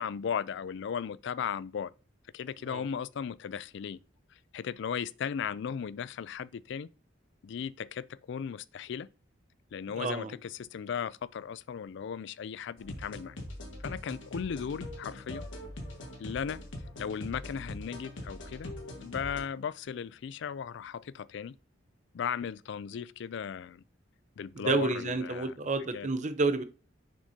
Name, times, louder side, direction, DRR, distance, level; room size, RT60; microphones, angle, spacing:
voice 1, 0.0-1.9 2.3-4.0 4.5-6.9 7.4-9.1 9.7-13.4 13.8-15.5 16.2-16.6 17.0-18.7 19.0-21.5 22.1-23.8 24.4-25.5 25.9-26.1, left 7 dB, 65° left, 0.4 m, -36 dB
voice 2, 10.0-10.3 24.6-26.6, right 3 dB, 40° right, 0.7 m, -30 dB
sound 1, 12.8-19.4, left 1 dB, 85° left, 1.7 m, -42 dB
6.5 x 6.2 x 2.7 m
head